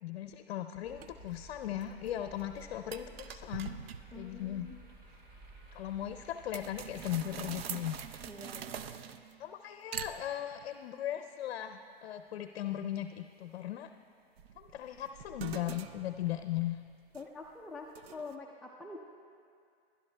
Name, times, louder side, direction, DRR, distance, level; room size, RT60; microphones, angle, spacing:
voice 1, 0.0-3.8 4.2-4.7 5.7-8.0 9.4-13.9 14.6-16.8, left 12 dB, 70° left, 8 dB, 0.6 m, -38 dB
sound 1, 0.8-8.3, right 2 dB, 45° right, 2.3 m, -54 dB
sound 2, 1.0-1.1 1.6-2.1 2.4-2.5 2.9-4.3 6.5-9.5 9.9-10.7 14.4-17.5 18.0-18.3, right 8 dB, 70° right, 0.6 m, -44 dB
voice 2, 4.1-4.8 8.3-8.8 17.1-19.0, left 3 dB, ahead, -4 dB, 0.3 m, -46 dB
20.0 x 11.5 x 2.2 m, 2.4 s
hypercardioid pair, 120°, 31 cm